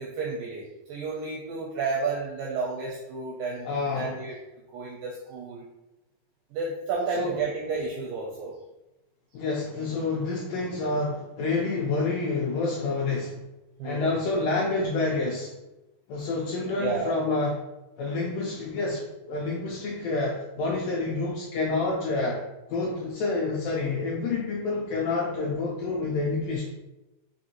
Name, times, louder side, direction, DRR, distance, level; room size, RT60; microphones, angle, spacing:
voice 1, 0.0-3.7 4.0-4.4 4.7-5.7 6.5-8.6 13.8-14.1 16.8-17.2 22.2-22.4, right 4 dB, 85° right, -2 dB, 1.9 m, -31 dB
voice 2, 3.6-4.2 7.2-7.4 9.3-13.4 13.8-15.5 16.1-17.6 18.0-22.4 22.7-26.7, left 3 dB, 85° left, -3 dB, 1.9 m, -28 dB
5.8 x 2.6 x 2.9 m, 0.98 s
omnidirectional pair, 4.5 m